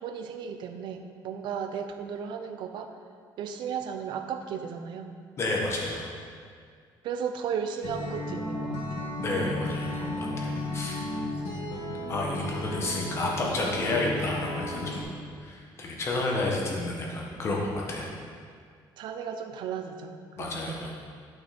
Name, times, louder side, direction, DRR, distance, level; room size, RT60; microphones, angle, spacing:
voice 1, 0.0-2.9 3.4-5.2 7.0-9.1 19.0-20.9, right 7 dB, 65° right, 7 dB, 0.7 m, -35 dB
voice 2, 5.4-6.1 9.2-11.1 11.7-11.8 12.1-15.1 15.4-18.1 20.4-20.9, left 2 dB, 30° left, -2 dB, 1.5 m, -31 dB
Acoustic guitar, 7.8-15.0, left 1 dB, 80° left, 2.1 m, -34 dB
12.0 x 5.9 x 4.4 m, 2.1 s
cardioid pair, 180°, 8 cm